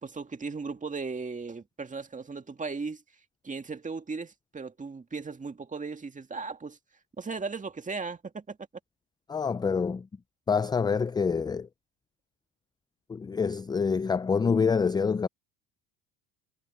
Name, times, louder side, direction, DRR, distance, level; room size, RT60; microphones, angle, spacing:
voice 1, 0.0-3.0 3.4-6.8 7.2-8.6, right 4 dB, 20° right, 2.0 m, -37 dB
voice 2, 9.3-10.1 10.5-11.7 13.1-15.3, left 5 dB, 10° left, 0.3 m, -26 dB
supercardioid pair, 100°, 37 cm